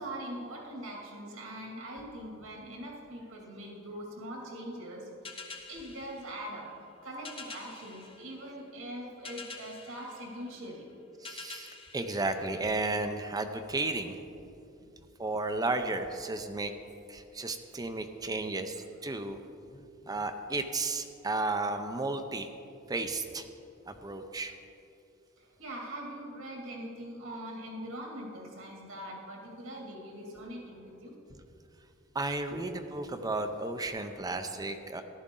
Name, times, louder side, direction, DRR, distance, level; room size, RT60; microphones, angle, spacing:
voice 1, 0.0-5.0 5.3-6.7 7.0-10.9 25.4-31.1 32.5-32.6 34.0-34.1, right 1 dB, 85° right, -2 dB, 2.4 m, -42 dB
sound 1, 5.2-13.1, left 4 dB, 25° left, 1.0 m, -48 dB
voice 2, 11.2-14.2 15.2-16.7 17.1-19.4 20.1-22.5 22.9-23.5 23.9-24.5 32.1-35.0, right 2 dB, 20° right, 7 dB, 0.5 m, -33 dB
14.5 x 11.5 x 3.8 m, 2.7 s
head